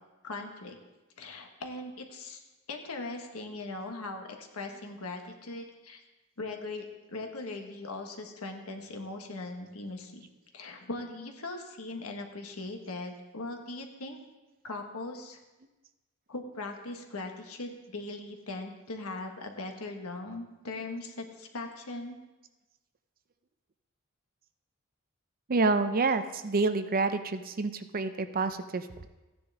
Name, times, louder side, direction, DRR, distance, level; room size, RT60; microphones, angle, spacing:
voice 1, 0.2-0.7 1.2-2.4 2.7-6.0 6.4-10.3 10.5-14.2 14.6-15.4 16.3-22.2, left 2 dB, 80° left, 3 dB, 1.4 m, -40 dB
voice 2, 25.5-29.1, right 3 dB, 40° right, 10 dB, 0.6 m, -28 dB
15.0 x 9.8 x 3.6 m, 1.1 s
head